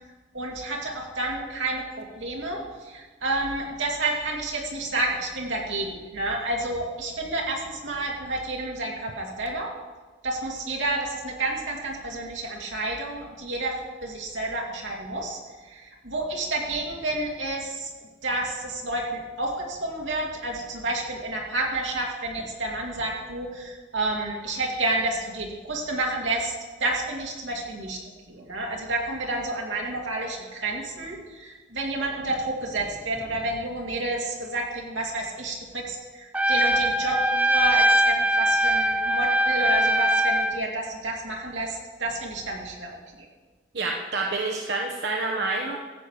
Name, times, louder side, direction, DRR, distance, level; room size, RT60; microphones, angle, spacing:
voice 1, 0.3-9.7 10.2-13.7 14.0-17.9 18.2-26.5 26.8-28.0 28.3-43.0, right 2 dB, 85° right, -1 dB, 2.5 m, -30 dB
Trumpet, 36.3-40.6, right 1 dB, 5° right, 0.4 m, -22 dB
voice 2, 43.7-45.8, right 3 dB, 65° right, 0 dB, 1.0 m, -28 dB
14.5 x 8.4 x 4.8 m, 1.3 s
head